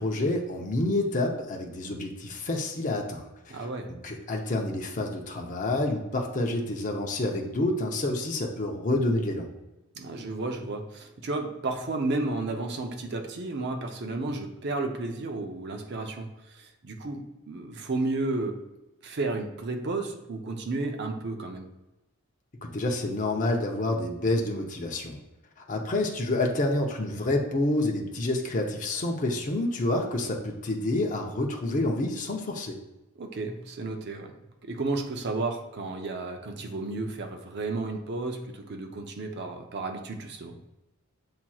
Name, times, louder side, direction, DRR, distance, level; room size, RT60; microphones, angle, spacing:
voice 1, 0.0-9.5 22.6-25.2 25.6-32.8, left 2 dB, 35° left, 1 dB, 0.6 m, -28 dB
voice 2, 3.5-3.9 10.0-18.6 19.0-21.7 33.2-34.3 34.6-40.5, right 2 dB, 50° right, 4 dB, 0.6 m, -32 dB
7.3 x 2.9 x 2.3 m, 1.0 s
head